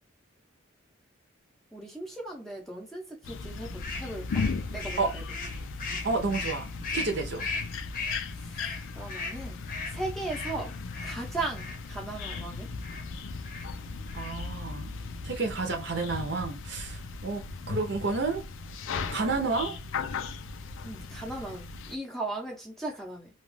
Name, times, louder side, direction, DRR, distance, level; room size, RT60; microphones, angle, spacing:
voice 1, 1.7-4.5 4.7-5.2 8.5-8.6 8.9-9.6 9.9-10.8 11.0-12.7 20.8-23.3, right 2 dB, ahead, 0.6 m, -37 dB
sound 1, 3.2-22.0, left 4 dB, 75° left, 0.4 m, -37 dB
sound 2, 3.8-11.8 12.2-12.5 12.8-13.1 13.4-13.7 14.0-14.5, left 4 dB, 40° left, 0.7 m, -38 dB
voice 2, 6.0-7.4 14.1-14.9 15.2-18.4 19.1-19.8, right 3 dB, 55° right, 0.7 m, -30 dB
2.4 x 2.3 x 3.1 m
head